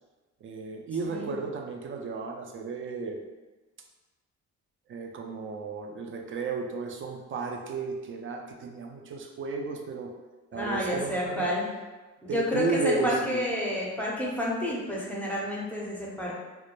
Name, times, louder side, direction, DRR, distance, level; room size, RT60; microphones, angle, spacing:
voice 1, 0.4-3.2 4.9-10.1 10.5-11.5 12.3-13.6, right 4 dB, 45° right, 3 dB, 0.4 m, -33 dB
voice 2, 10.5-11.7 12.2-16.4, equal, 5° left, -5 dB, 0.6 m, -30 dB
2.2 x 2.0 x 2.9 m, 1.2 s
cardioid pair, 90°, 30 cm